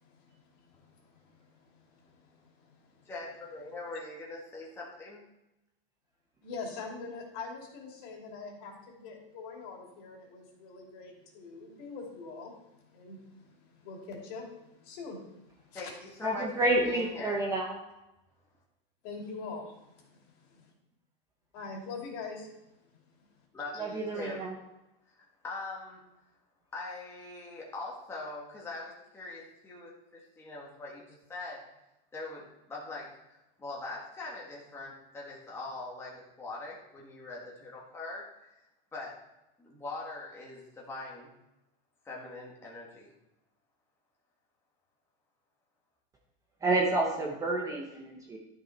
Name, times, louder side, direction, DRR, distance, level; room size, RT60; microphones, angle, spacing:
voice 1, 0.0-3.0 6.4-15.8 19.0-20.5 21.5-22.5, left 4 dB, 45° left, 0 dB, 2.9 m, -44 dB
voice 2, 3.0-5.2 15.7-16.5 16.8-17.4 23.5-24.4 25.1-26.0 26.7-31.6 32.1-38.3 38.9-39.2 39.6-41.3 42.0-43.1, left 2 dB, 10° left, -4 dB, 1.4 m, -42 dB
voice 3, 16.2-17.8 23.8-24.5 46.6-48.4, right 2 dB, 10° right, -2 dB, 0.9 m, -29 dB
12.0 x 6.3 x 4.3 m, 0.93 s
supercardioid pair, 165°, 30 cm